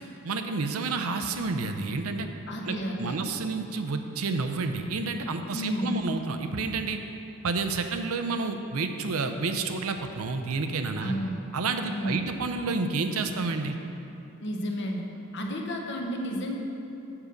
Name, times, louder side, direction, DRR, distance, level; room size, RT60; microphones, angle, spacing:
voice 1, 0.2-2.3 2.6-7.0 7.4-11.1 11.5-13.8, right 4 dB, 80° right, 7 dB, 0.6 m, -30 dB
voice 2, 2.5-3.2 5.5-6.0 11.0-11.4 11.8-12.3 14.4-15.0 15.3-16.6, equal, 55° left, 2 dB, 0.9 m, -31 dB
7.3 x 6.7 x 5.1 m, 2.8 s
head